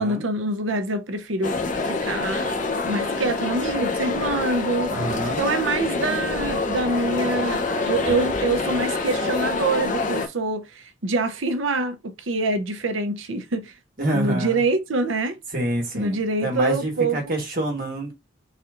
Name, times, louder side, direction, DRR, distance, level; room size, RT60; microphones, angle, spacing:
voice 1, 0.0-2.5 2.9-4.9 5.4-13.7 14.1-15.4 15.9-17.3, right 2 dB, 75° right, 0.7 m, -25 dB
sound 1, 1.4-10.3, left 3 dB, 40° left, 0.8 m, -26 dB
voice 2, 4.9-5.4 14.0-14.6 15.5-18.1, right 1 dB, 45° right, 1.7 m, -27 dB
4.2 x 4.0 x 2.6 m
head